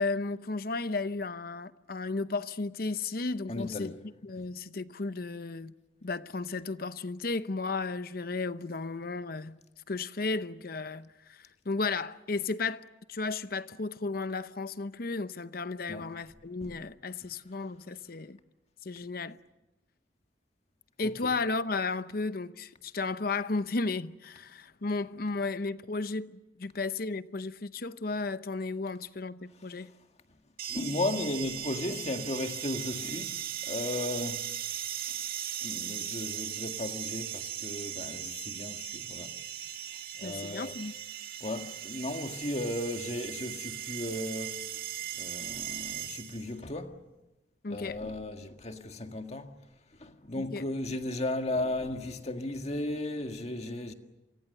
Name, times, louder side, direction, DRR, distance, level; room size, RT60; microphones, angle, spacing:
voice 1, 0.0-3.9 4.2-5.7 6.0-9.6 9.9-11.4 11.7-12.8 13.1-18.4 18.8-19.4 21.0-29.9 40.2-40.9 47.6-48.0 50.4-50.6, left 3 dB, 55° left, 0.8 m, -34 dB
voice 2, 3.5-4.0 4.4-4.5 15.9-16.1 16.6-16.7 17.2-17.3 21.0-21.3 29.8-29.9 30.7-34.5 35.1-35.2 35.6-39.4 40.2-40.7 41.4-44.7 45.1-47.0 47.7-49.6 49.9-53.9, left 2 dB, 35° left, 1.8 m, -35 dB
sound 1, 30.6-46.5, right 10 dB, 55° right, 1.8 m, -38 dB
28.0 x 24.5 x 6.8 m
head